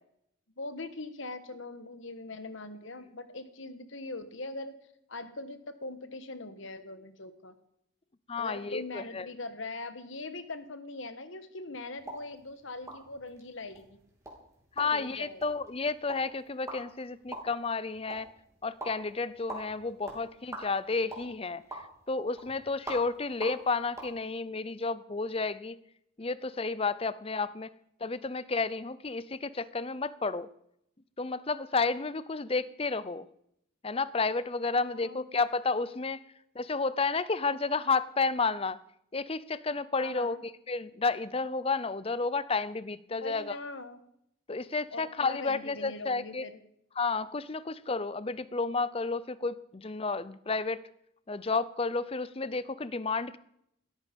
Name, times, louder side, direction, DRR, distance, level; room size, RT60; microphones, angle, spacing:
voice 1, 0.6-4.8 5.1-7.5 8.3-14.0 14.8-15.5 34.8-35.3 39.9-40.4 43.2-44.0 44.9-46.6, left 2 dB, 60° left, 11 dB, 1.5 m, -41 dB
voice 2, 8.3-9.3 14.8-18.3 18.6-21.8 22.1-25.8 26.2-27.7 28.0-30.5 31.2-33.3 33.8-36.2 36.6-38.8 39.1-43.5 44.5-46.5 47.0-50.8 51.3-53.4, left 4 dB, 25° left, 17 dB, 0.6 m, -31 dB
sound 1, 12.0-24.1, right 1 dB, 15° right, 3.6 m, -46 dB
17.0 x 13.5 x 5.3 m, 0.73 s
head